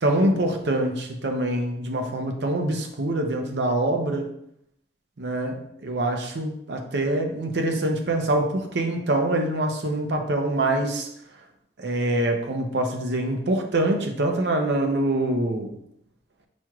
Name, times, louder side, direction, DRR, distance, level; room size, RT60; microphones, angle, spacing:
voice 1, 0.0-4.3 5.2-11.1 11.8-15.7, right 1 dB, 70° right, 3 dB, 0.7 m, -25 dB
6.1 x 2.9 x 2.4 m, 0.73 s
head